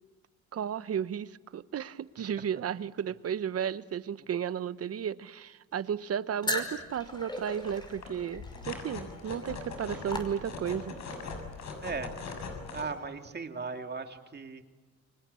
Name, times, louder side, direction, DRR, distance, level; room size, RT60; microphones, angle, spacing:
voice 1, 0.5-11.0, right 8 dB, 50° right, 1.0 m, -34 dB
sound 1, 6.4-10.9, left 1 dB, 15° left, 5.3 m, -38 dB
sound 2, 6.5-6.6 7.0-7.2 7.5-12.8, left 4 dB, 65° left, 6.7 m, -41 dB
voice 2, 11.8-12.1 12.7-14.6, right 4 dB, 35° right, 2.5 m, -37 dB
29.5 x 24.0 x 8.3 m
cardioid pair, 90°, 30 cm